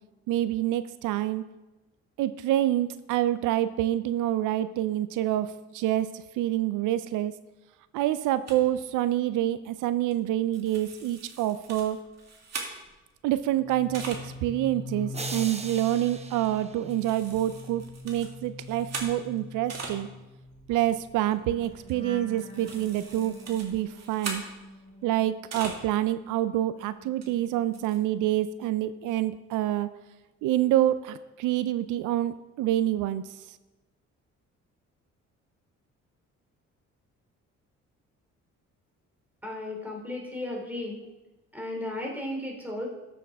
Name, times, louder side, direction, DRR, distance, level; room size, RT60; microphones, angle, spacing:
voice 1, 0.3-1.4 2.2-7.3 7.9-12.0 13.2-20.1 20.7-24.4 25.0-29.9 30.4-33.4, right 13 dB, 90° right, 13 dB, 0.5 m, -27 dB
sound 1, 8.5-8.6 10.1-10.3 10.5-13.1 13.7-14.2 14.8-14.9 15.2-15.5 16.4-16.6 16.9-20.0 20.3-25.9 26.2-26.3 27.2-27.3 27.5-28.0, right 4 dB, 60° right, 2.1 m, -41 dB
sound 2, 13.5-25.8 26.1-28.2 28.5-28.8, left 2 dB, 20° left, 1.6 m, -44 dB
sound 3, 15.1-17.5, right 3 dB, 20° right, 0.9 m, -40 dB
voice 2, 39.4-41.0 41.5-42.9, left 1 dB, 5° right, -1 dB, 2.9 m, -34 dB
13.0 x 7.1 x 3.5 m, 1.1 s
cardioid pair, 90°, 30 cm